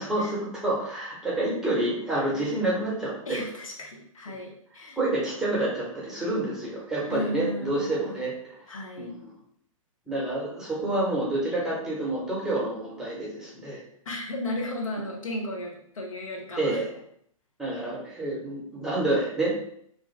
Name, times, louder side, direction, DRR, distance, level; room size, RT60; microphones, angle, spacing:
voice 1, 0.0-3.4 5.0-8.3 9.0-9.1 10.1-13.8 16.6-16.9 17.6-19.7, right 2 dB, 5° right, -6 dB, 0.9 m, -28 dB
voice 2, 3.3-5.0 7.0-8.3 8.7-9.2 14.0-16.8, left 1 dB, 70° left, 0 dB, 0.7 m, -34 dB
2.6 x 2.1 x 3.2 m, 0.67 s
figure-of-eight pair, 115°, 18 cm